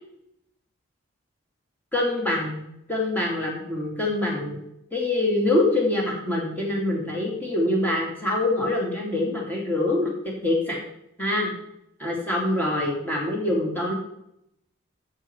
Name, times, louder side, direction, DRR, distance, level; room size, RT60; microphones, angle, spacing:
voice 1, 1.9-2.6 2.9-4.6 4.9-10.1 10.4-10.8 11.2-11.5 12.0-13.9, left 2 dB, 10° left, -2 dB, 2.8 m, -25 dB
14.0 x 6.5 x 4.5 m, 0.77 s
head